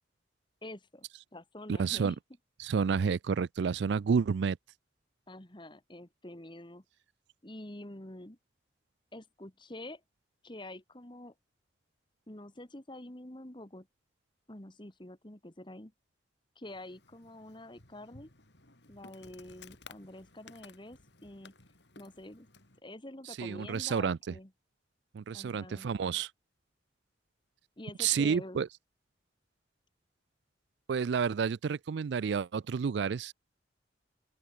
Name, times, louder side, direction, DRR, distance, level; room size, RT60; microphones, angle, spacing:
voice 1, 0.6-1.1 1.3-2.2 5.3-6.8 7.4-8.4 9.1-10.0 10.4-11.3 12.3-13.9 14.5-15.9 16.6-18.3 18.9-21.5 22.0-22.5 22.8-24.5 25.3-25.9 27.8-28.6, left 1 dB, 25° left, 2.0 m, -47 dB
voice 2, 1.7-2.1 2.6-4.6 23.4-24.3 25.1-26.3 28.0-28.7 30.9-33.3, right 6 dB, 65° right, 0.4 m, -30 dB
Insect, 16.7-22.8, left 4 dB, 65° left, 4.1 m, -57 dB
open air
head